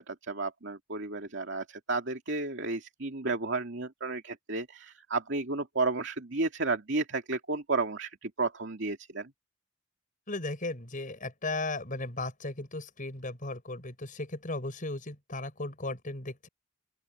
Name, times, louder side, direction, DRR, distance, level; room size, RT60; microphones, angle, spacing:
voice 1, 0.1-9.3, right 3 dB, 60° right, 2.5 m, -32 dB
voice 2, 10.3-16.5, left 2 dB, 40° left, 5.7 m, -36 dB
open air
head